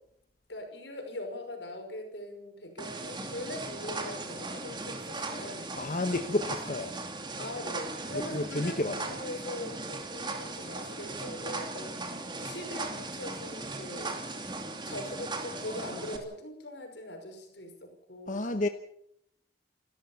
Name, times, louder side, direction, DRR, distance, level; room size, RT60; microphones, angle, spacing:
voice 1, 0.5-5.7 7.4-14.2 14.9-18.5, left 1 dB, 80° left, 5 dB, 5.6 m, -41 dB
sound 1, 2.8-16.2, right 2 dB, 25° right, 2.7 m, -38 dB
voice 2, 5.8-6.9 8.1-9.2 18.3-18.7, left 2 dB, 45° left, 7 dB, 1.1 m, -31 dB
29.0 x 13.5 x 7.1 m, 0.74 s
head